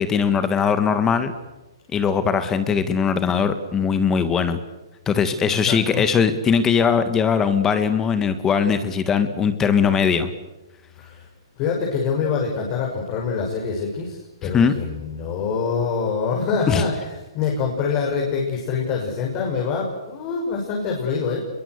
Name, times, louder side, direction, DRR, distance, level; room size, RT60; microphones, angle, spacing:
voice 1, 0.0-1.3 1.9-4.6 5.0-10.3 14.4-14.7 16.7-16.8, left 6 dB, 15° left, 10 dB, 1.7 m, -20 dB
voice 2, 5.4-6.0 11.0-11.3 11.6-21.4, left 5 dB, 35° left, 0 dB, 6.3 m, -25 dB
26.5 x 22.5 x 8.2 m, 1.1 s
hypercardioid pair, 145°, 3 cm